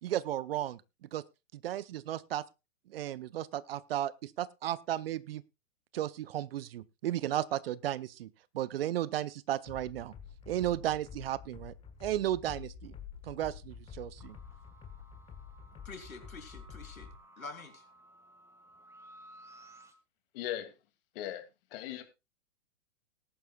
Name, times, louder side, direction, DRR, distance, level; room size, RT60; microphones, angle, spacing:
voice 1, 0.0-0.8 1.1-1.2 1.6-2.4 2.9-5.4 5.9-8.3 8.5-10.1 10.5-11.7 12.0-12.9 13.3-14.3, right 12 dB, 45° right, 0.6 m, -34 dB
sound 1, 9.7-17.2, left 7 dB, 15° left, 1.3 m, -49 dB
sound 2, 14.2-19.9, right 1 dB, 5° right, 1.6 m, -57 dB
voice 2, 15.8-17.1 17.4-17.8, left 3 dB, 85° left, 3.0 m, -46 dB
voice 3, 20.3-20.8 21.1-21.4 21.7-22.0, left 12 dB, 40° left, 2.4 m, -38 dB
19.5 x 11.0 x 2.3 m
figure-of-eight pair, 120°, 41 cm